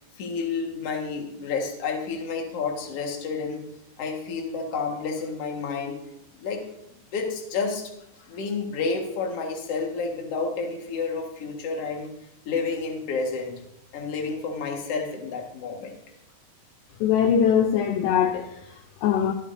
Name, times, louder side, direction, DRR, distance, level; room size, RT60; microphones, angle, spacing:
voice 1, 0.2-3.6 4.0-6.0 6.4-6.6 7.1-7.8 8.2-12.1 12.5-13.6 13.9-16.0, left 4 dB, 50° left, 1 dB, 2.2 m, -30 dB
voice 2, 17.0-19.3, left 8 dB, 75° left, 5 dB, 2.2 m, -22 dB
23.5 x 8.4 x 2.7 m, 0.82 s
omnidirectional pair, 4.4 m